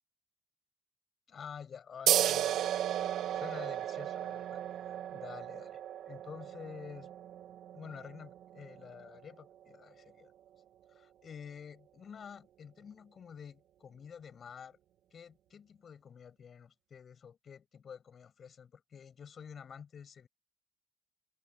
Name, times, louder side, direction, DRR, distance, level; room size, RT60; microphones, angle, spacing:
voice 1, 1.3-3.0 3.3-5.8 6.1-7.1 7.7-10.3 10.9-14.8 15.1-20.3, left 7 dB, 50° left, 7.8 m, -49 dB
sound 1, 2.1-9.2, right 11 dB, 80° right, 2.0 m, -34 dB
cardioid pair, 90°, 0 cm